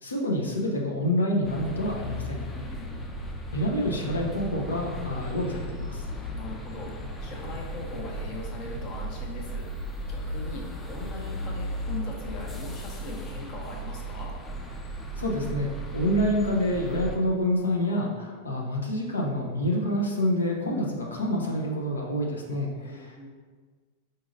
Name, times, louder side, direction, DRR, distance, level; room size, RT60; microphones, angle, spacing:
voice 1, 0.0-2.5 3.5-6.1 15.2-23.1, left 1 dB, 75° left, -1 dB, 0.7 m, -27 dB
Euston - Bus Terminal, 1.4-17.2, equal, 15° left, 0.6 m, -36 dB
voice 2, 2.5-3.0 6.3-14.3 22.7-23.3, left 2 dB, 40° left, 0 dB, 1.0 m, -40 dB
4.8 x 4.0 x 2.6 m, 1.5 s
figure-of-eight pair, 90°, 0 cm